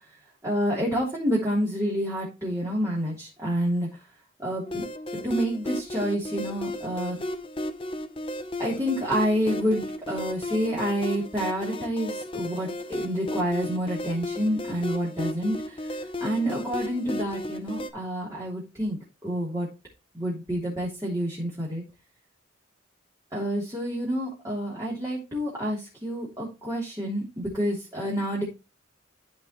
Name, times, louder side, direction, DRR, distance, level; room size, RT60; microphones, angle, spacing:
voice 1, 0.4-4.0 4.4-4.8 5.1-7.2 8.6-19.0 19.2-19.7 20.1-21.8 23.3-28.4, equal, 15° right, -6 dB, 3.3 m, -28 dB
sound 1, 4.6-17.9, left 1 dB, 25° left, 0.8 m, -34 dB
13.5 x 5.3 x 3.1 m, 0.27 s
head